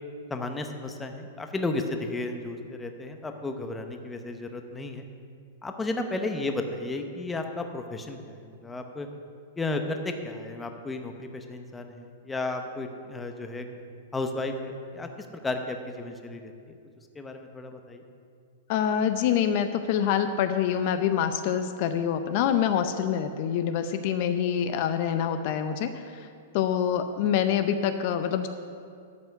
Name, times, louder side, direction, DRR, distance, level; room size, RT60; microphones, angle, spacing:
voice 1, 0.3-5.0 5.6-9.1 9.6-13.7 14.1-15.1 15.4-16.5 17.1-18.0, left 2 dB, 10° left, 5 dB, 0.8 m, -33 dB
voice 2, 18.7-26.3 26.5-28.5, left 8 dB, 45° left, 9 dB, 0.6 m, -26 dB
12.5 x 5.6 x 8.0 m, 2.3 s
supercardioid pair, 155°, 0 cm